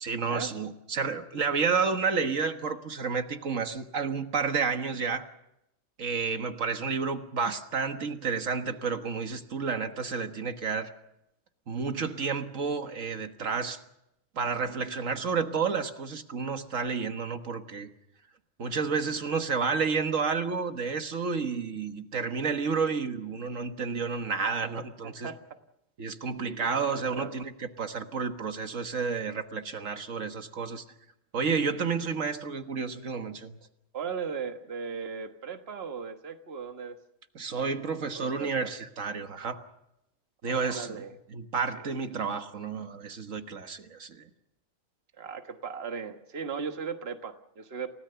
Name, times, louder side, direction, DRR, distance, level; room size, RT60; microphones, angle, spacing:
voice 1, 0.0-5.3 6.0-10.9 11.7-13.8 14.4-17.9 18.6-25.3 26.0-30.8 31.3-33.5 37.4-39.6 40.4-41.0 41.3-44.2, right 5 dB, 75° right, 7 dB, 1.8 m, -30 dB
voice 2, 25.0-25.4 26.4-27.3 33.9-37.0 38.1-38.7 40.5-41.1 41.8-41.9 45.2-47.9, right 6 dB, 50° right, 6 dB, 1.6 m, -37 dB
29.5 x 17.5 x 6.9 m, 0.83 s
omnidirectional pair, 1.3 m